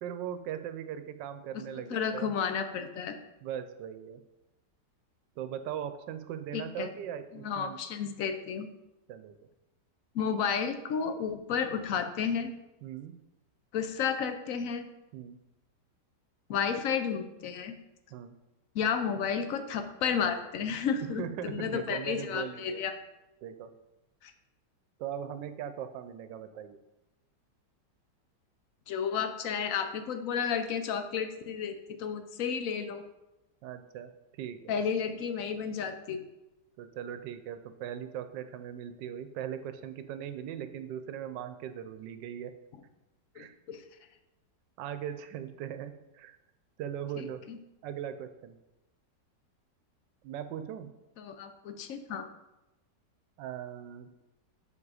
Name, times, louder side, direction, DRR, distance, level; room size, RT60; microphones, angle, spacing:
voice 1, 0.0-2.3 3.4-4.2 5.4-7.8 9.1-9.4 12.8-13.2 15.1-15.4 18.1-18.3 21.0-22.8 23.4-23.7 25.0-26.8 33.6-34.7 36.8-42.5 43.3-43.6 44.8-46.4 46.8-47.4 47.8-48.6 50.2-50.9 53.4-54.1, right 9 dB, 85° right, 10 dB, 1.2 m, -39 dB
voice 2, 1.7-3.2 6.5-6.9 7.3-8.7 10.1-12.5 13.7-14.9 16.5-17.7 18.7-22.9 24.2-24.3 28.9-33.0 34.7-36.2 43.4-43.8 47.2-47.6 51.2-52.3, left 7 dB, 65° left, 9 dB, 0.9 m, -32 dB
7.2 x 5.2 x 4.8 m, 0.98 s
omnidirectional pair, 1.9 m